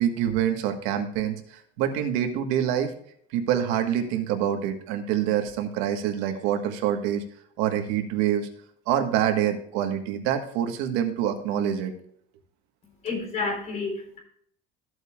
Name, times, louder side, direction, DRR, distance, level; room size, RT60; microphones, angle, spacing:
voice 1, 0.0-2.9 3.3-7.2 7.6-8.5 8.9-11.9, right 10 dB, 70° right, 6 dB, 1.5 m, -26 dB
voice 2, 13.0-14.2, left 3 dB, 35° left, 1 dB, 3.7 m, -30 dB
14.5 x 7.9 x 2.4 m, 0.64 s
cardioid pair, 165°, 21 cm